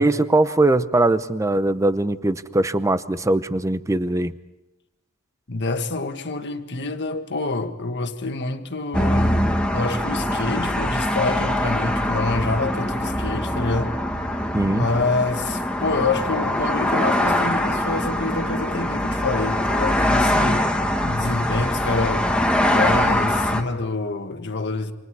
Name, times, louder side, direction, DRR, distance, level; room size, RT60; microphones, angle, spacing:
voice 1, 0.0-4.3 14.5-14.9, right 2 dB, 15° right, 0.8 m, -21 dB
voice 2, 5.5-9.4 9.7-14.0 14.5-20.7 21.0-22.3 22.6-24.9, left 3 dB, 55° left, 1.7 m, -26 dB
sound 1, 8.9-23.6, left 1 dB, 5° left, 1.6 m, -23 dB
28.5 x 26.5 x 4.8 m
head